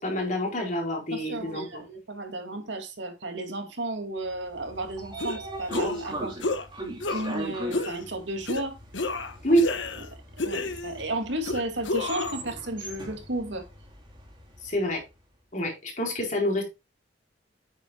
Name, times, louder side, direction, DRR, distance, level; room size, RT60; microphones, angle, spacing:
voice 1, 0.0-1.8 9.4-9.6 14.6-15.0 15.5-16.6, equal, 40° left, 4.4 m, -26 dB
voice 2, 1.1-6.3 7.1-8.8 10.4-13.6, right 2 dB, 70° right, 2.5 m, -33 dB
Train / Sliding door, 4.5-14.7, right 1 dB, 25° right, 3.4 m, -39 dB
sound 1, 5.2-5.4 5.7-6.1 6.4-6.7 7.0-7.4 7.7-8.0 8.5-8.6 8.9-10.1 10.4-11.0 11.4-12.4, left 3 dB, 75° left, 1.2 m, -30 dB
9.5 x 9.2 x 2.4 m
head